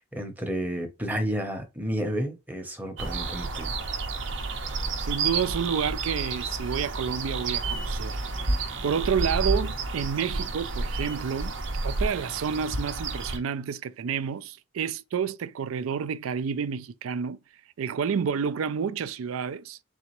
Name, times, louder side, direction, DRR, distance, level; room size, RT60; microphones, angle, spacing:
voice 1, 0.0-3.7, equal, 10° right, 0.8 m, -31 dB
sound 1, 3.0-13.4, right 3 dB, 65° right, 0.7 m, -30 dB
voice 2, 5.0-8.2 8.8-11.6 11.8-17.4 17.8-19.8, right 7 dB, 90° right, 0.4 m, -29 dB
4.0 x 3.4 x 3.0 m
head